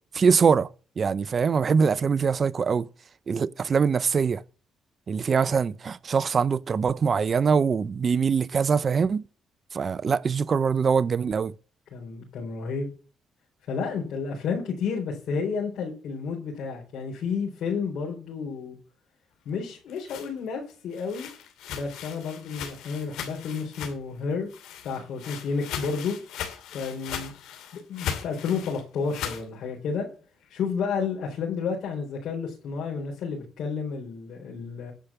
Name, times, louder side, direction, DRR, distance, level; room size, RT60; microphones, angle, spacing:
voice 1, 0.1-0.7 1.0-2.8 3.3-4.4 5.1-9.2 9.7-11.5, right 6 dB, 45° right, 0.6 m, -23 dB
voice 2, 11.9-12.9 13.7-18.8 19.5-21.3 21.7-24.5 24.8-26.2 26.7-27.3 27.7-30.1 30.5-34.9, left 5 dB, 75° left, 4.0 m, -31 dB
sound 1, 19.7-24.2 24.5-29.5, left 9 dB, 90° left, 2.5 m, -38 dB
10.5 x 5.0 x 8.1 m
cardioid pair, 90°, 0 cm